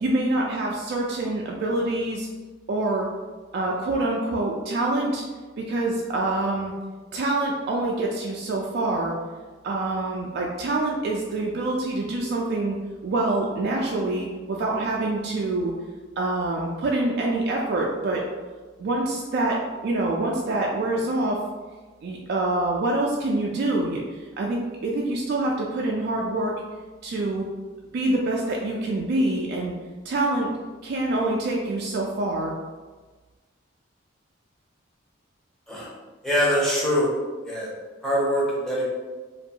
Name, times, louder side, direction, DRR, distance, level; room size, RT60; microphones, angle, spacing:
voice 1, 0.0-2.3 2.7-3.1 3.5-5.2 5.6-6.7 7.1-9.2 9.6-12.8 13.0-15.7 16.2-18.2 18.8-19.6 19.8-21.4 22.0-24.0 24.4-26.6 27.0-27.5 27.9-29.7 30.1-30.5 30.8-32.5, right 2 dB, 60° right, -2 dB, 0.3 m, -25 dB
voice 2, 36.2-37.1 37.5-37.7 38.0-38.8, equal, 5° left, -7 dB, 0.6 m, -23 dB
2.5 x 2.3 x 2.7 m, 1.3 s
head